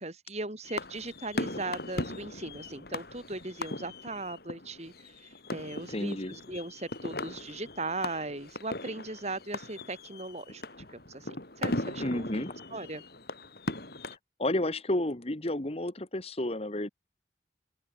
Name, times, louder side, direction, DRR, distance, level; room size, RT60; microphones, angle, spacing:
voice 1, 0.0-10.6 10.9-12.4 12.7-13.0, right 2 dB, 40° right, 3.8 m, -38 dB
sound 1, 0.6-14.2, left 2 dB, 60° left, 4.8 m, -39 dB
voice 2, 5.9-6.3 12.0-12.5 14.4-16.9, left 1 dB, 35° left, 1.6 m, -31 dB
open air
head